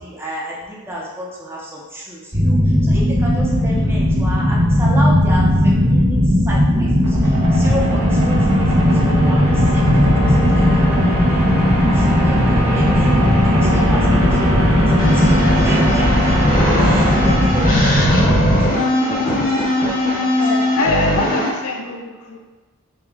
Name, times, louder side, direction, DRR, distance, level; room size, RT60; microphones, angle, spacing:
voice 1, 0.0-2.6 2.8-9.8 10.2-10.9 11.3-11.4 11.9-13.1 13.4-14.9 15.1-15.4 15.6-16.3 16.8-19.1 19.3-19.5 19.8-20.9 21.2-21.4, equal, 10° right, -5 dB, 0.8 m, -31 dB
sound 1, 2.3-18.6, left 1 dB, 30° right, 1.2 m, -16 dB
voice 2, 3.5-4.0 20.2-22.4, left 2 dB, 70° left, 1 dB, 0.6 m, -25 dB
sound 2, 6.1-18.6, equal, 85° right, 1.1 m, -21 dB
sound 3, 15.0-21.5, left 1 dB, 40° left, 0.8 m, -20 dB
5.3 x 2.4 x 3.5 m, 1.3 s
head